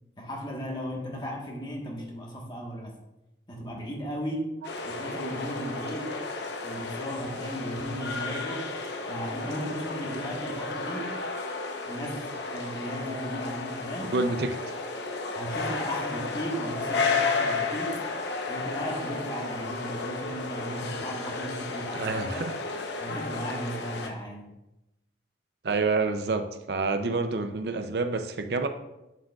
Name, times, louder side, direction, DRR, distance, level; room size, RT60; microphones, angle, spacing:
voice 1, 0.2-2.9 3.5-6.2 6.6-8.7 9.1-11.1 11.9-14.1 15.3-18.1 18.5-22.5 23.0-24.5, equal, 25° left, -1 dB, 1.3 m, -36 dB
sound 1, 4.6-24.1, left 3 dB, 75° left, 0.8 m, -33 dB
voice 2, 14.1-14.5 21.9-22.5 25.6-28.7, right 3 dB, 65° right, 8 dB, 0.5 m, -28 dB
9.0 x 7.5 x 2.4 m, 0.93 s
head